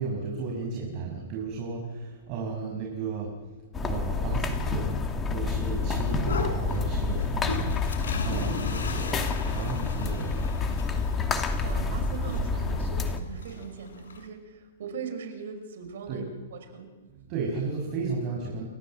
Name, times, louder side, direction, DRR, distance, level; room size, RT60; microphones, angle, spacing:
voice 1, 0.0-3.3 3.8-4.9 5.3-10.4 16.1-16.2 17.1-18.6, right 4 dB, 45° right, 0 dB, 6.1 m, -34 dB
sound 1, 3.7-13.2, left 4 dB, 20° left, 2.5 m, -29 dB
sound 2, 6.2-14.3, left 3 dB, 75° left, 6.3 m, -36 dB
voice 2, 11.6-16.9, right 5 dB, 70° right, 7 dB, 5.8 m, -40 dB
30.0 x 14.0 x 7.8 m, 1.3 s
hypercardioid pair, 115°, 0 cm